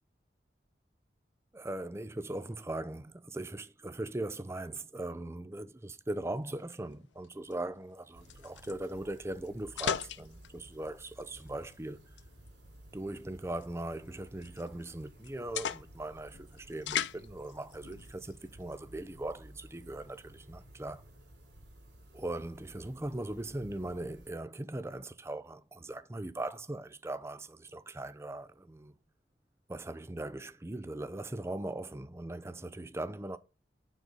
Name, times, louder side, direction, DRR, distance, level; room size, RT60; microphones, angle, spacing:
voice 1, 1.5-12.0 12.9-21.0 22.1-28.9 29.7-33.4, right 1 dB, 15° right, 0.5 m, -40 dB
sound 1, 6.4-18.8, left 9 dB, 85° left, 0.5 m, -42 dB
sound 2, 8.1-24.3, right 1 dB, 80° right, 3.4 m, -55 dB
9.3 x 4.0 x 5.2 m
head